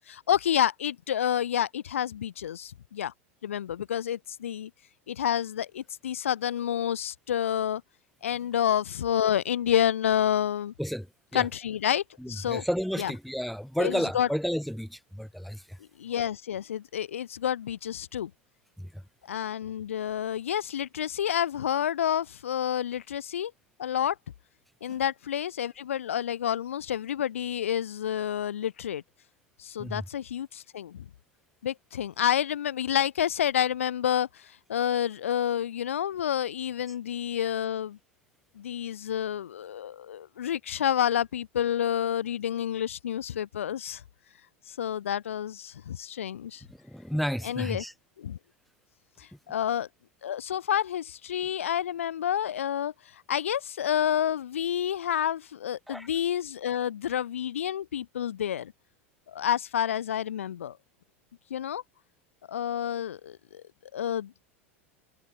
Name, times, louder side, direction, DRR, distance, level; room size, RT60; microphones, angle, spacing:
voice 1, 0.1-3.1 3.4-4.7 5.1-7.8 8.2-10.7 11.3-12.6 13.0-13.1 13.8-14.3 16.0-18.3 19.3-23.5 23.8-24.2 24.8-29.0 29.6-31.1 31.6-38.0 38.6-44.0 44.7-46.6 47.4-47.8 48.2-48.4 49.2-49.9 50.2-58.7 59.3-60.8 61.5-61.8 62.5-63.6 63.9-64.3, left 10 dB, 80° left, 2.0 m, -29 dB
voice 2, 10.8-11.5 12.2-15.8 18.8-19.0 24.9-25.0 29.8-30.0 46.7-47.9 49.3-49.4 55.9-56.1, equal, ahead, 3.2 m, -32 dB
hypercardioid pair, 90°, 7 cm